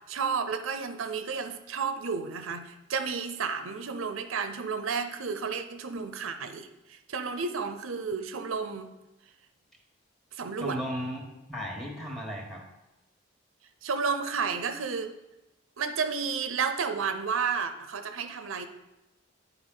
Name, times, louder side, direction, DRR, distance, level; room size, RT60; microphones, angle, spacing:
voice 1, 0.1-8.9 10.3-10.8 13.8-15.1 15.8-18.7, right 5 dB, 85° right, 9 dB, 0.6 m, -32 dB
voice 2, 10.6-12.6, equal, ahead, 0 dB, 1.2 m, -35 dB
9.8 x 4.5 x 3.8 m, 0.98 s
head